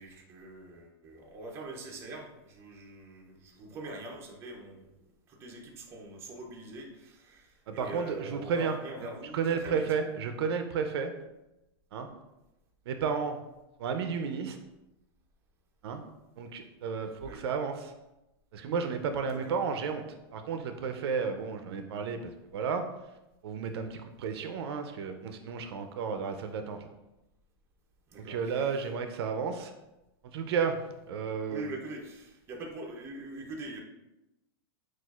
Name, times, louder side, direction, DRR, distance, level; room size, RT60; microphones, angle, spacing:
voice 1, 0.0-4.9 5.3-9.8 17.2-17.4 19.3-19.6 28.1-28.6 31.5-33.8, right 2 dB, 20° right, -1 dB, 0.5 m, -43 dB
voice 2, 7.7-8.8 9.3-11.1 11.9-12.1 12.9-13.4 13.8-14.6 15.8-16.0 16.4-17.9 18.5-20.0 20.3-22.8 23.4-26.9 28.2-29.7 30.2-30.8 31.1-31.7, right 6 dB, 70° right, 6 dB, 0.4 m, -32 dB
6.0 x 2.4 x 2.3 m, 0.95 s
supercardioid pair, 155°, 14 cm